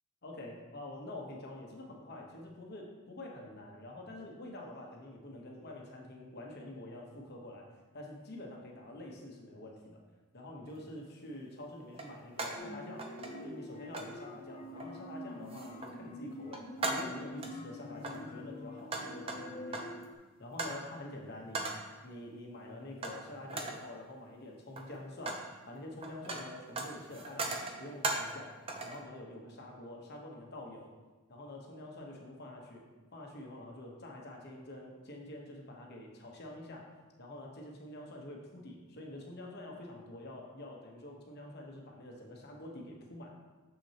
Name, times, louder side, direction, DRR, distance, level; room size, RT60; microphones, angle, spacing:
voice 1, 0.2-7.7 7.9-10.0 10.3-13.1 13.4-20.0 20.4-21.7 22.0-30.9 31.3-32.8 33.1-36.9 37.2-43.4, left 1 dB, 45° left, 0 dB, 1.0 m, -47 dB
sound 1, 10.7-10.8 11.9-12.7 13.0-13.6 13.9-14.2 14.8-15.1 15.5-16.0 16.3-17.6 18.0-20.0 20.6-20.9 21.5-21.9 23.0-23.2 23.5-23.9 24.6-25.5 25.8-28.4 28.7-29.0, right 2 dB, 25° right, 0.5 m, -39 dB
sound 2, 12.6-20.1, left 1 dB, 30° left, 0.4 m, -46 dB
6.9 x 6.1 x 2.9 m, 1.3 s
head